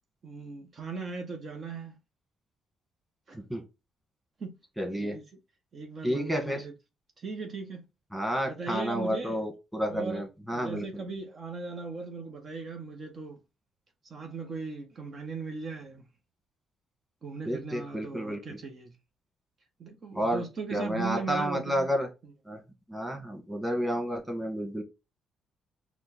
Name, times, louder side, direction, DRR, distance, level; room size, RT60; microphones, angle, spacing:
voice 1, 0.2-2.0 3.3-3.4 4.4-4.6 5.0-5.2 5.7-6.7 7.2-7.8 8.4-9.4 9.8-13.4 14.1-16.1 17.2-18.9 19.8-21.9 22.2-22.3, right 4 dB, 45° right, 1.0 m, -38 dB
voice 2, 4.8-5.2 6.0-6.6 8.1-10.8 17.5-18.4 20.1-20.4 20.7-22.1 22.5-22.6 22.9-24.8, equal, 5° right, 1.7 m, -30 dB
4.5 x 2.3 x 4.1 m
cardioid pair, 90°, 0 cm